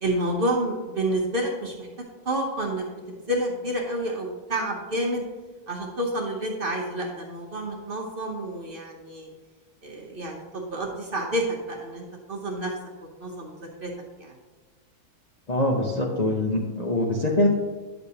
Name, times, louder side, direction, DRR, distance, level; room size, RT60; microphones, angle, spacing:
voice 1, 0.0-1.9 2.2-2.9 3.3-5.2 5.7-9.3 9.8-12.7 13.2-13.9 14.2-14.3, right 1 dB, 45° right, 0 dB, 0.9 m, -29 dB
voice 2, 15.5-17.5, left 1 dB, 40° left, -3 dB, 0.7 m, -23 dB
10.0 x 6.5 x 2.8 m, 1.3 s
omnidirectional pair, 1.6 m